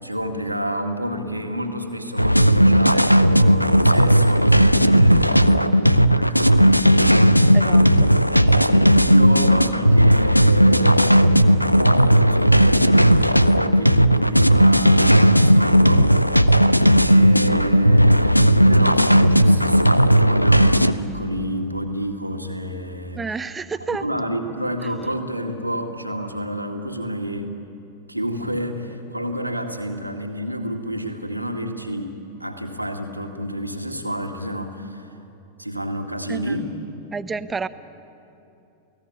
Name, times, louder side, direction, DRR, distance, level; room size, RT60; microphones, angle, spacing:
voice 1, 0.0-6.9 7.4-7.7 8.3-11.3 11.8-16.2 16.9-23.2 24.0-27.5 28.1-35.1 35.6-36.8, equal, 90° right, 3 dB, 2.1 m, -29 dB
sound 1, 2.2-20.9, equal, 90° left, 0.6 m, -15 dB
voice 2, 7.5-8.1 23.1-24.0 36.3-36.6 37.1-37.7, right 4 dB, 15° right, 12 dB, 0.9 m, -29 dB
28.5 x 17.5 x 9.9 m, 2.8 s
figure-of-eight pair, 90°, 0 cm